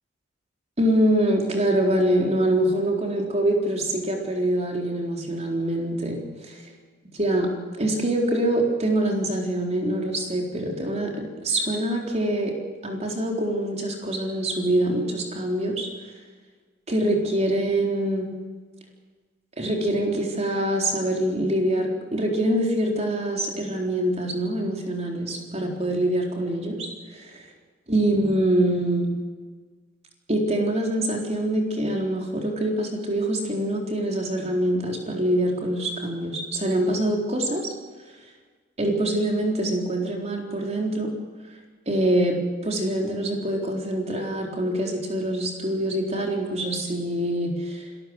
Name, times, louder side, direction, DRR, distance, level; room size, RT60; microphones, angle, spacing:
voice 1, 0.8-6.6 7.2-7.5 7.8-12.5 12.8-15.9 16.9-18.3 19.6-27.4 27.9-29.1 30.3-37.7 38.8-41.1 41.9-47.9, right 1 dB, 35° right, 1 dB, 4.0 m, -24 dB
26.0 x 13.5 x 8.0 m, 1.4 s
head